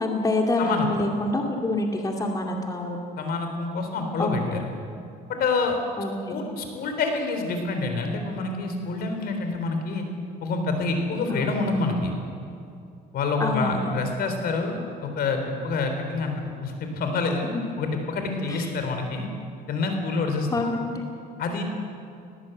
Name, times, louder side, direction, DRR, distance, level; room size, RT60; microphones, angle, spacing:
voice 1, 0.0-3.0 4.2-4.6 6.0-6.6 11.3-11.5 13.4-13.9 17.5-17.6 18.5-18.7 20.5-21.0, left 2 dB, 20° left, 1 dB, 2.3 m, -27 dB
voice 2, 3.2-4.6 5.3-5.8 6.3-10.1 10.4-12.1 13.1-17.5 17.8-19.3 19.7-20.5 21.4-21.6, left 3 dB, 65° left, 5 dB, 3.8 m, -27 dB
20.0 x 17.5 x 8.0 m, 2.4 s
cardioid pair, 110°, 17 cm